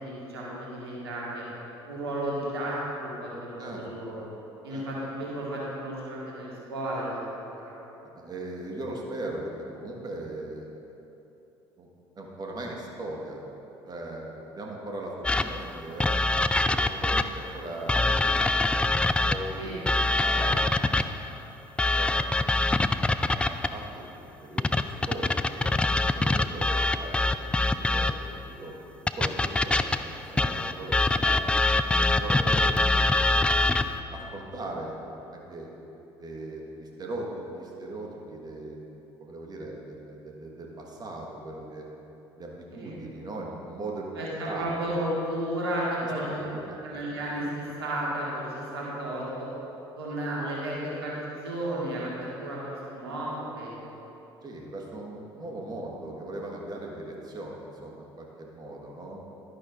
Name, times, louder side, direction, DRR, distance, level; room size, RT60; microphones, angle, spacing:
voice 1, 0.0-1.4 1.9-4.2 4.6-7.7 19.6-20.6 42.7-43.0 44.1-46.4 46.8-49.5 50.0-53.9, right 1 dB, 80° right, -5 dB, 1.7 m, -33 dB
voice 2, 8.0-10.8 11.8-11.9 12.1-13.4 13.8-16.2 16.7-18.9 19.3-19.7 20.2-20.8 21.9-22.5 23.3-28.7 29.2-31.6 32.0-33.0 33.5-35.0 35.3-35.7 36.2-41.9 42.4-44.1 44.4-44.7 46.0-46.8 47.1-47.2 54.4-59.2, right 2 dB, 30° right, -1 dB, 1.4 m, -39 dB
sound 1, 15.2-17.5 17.9-21.3 21.8-23.8 24.6-28.4 29.1-34.0, left 2 dB, 10° left, 0.3 m, -24 dB
11.5 x 11.0 x 2.5 m, 3.0 s
figure-of-eight pair, 55°, 13 cm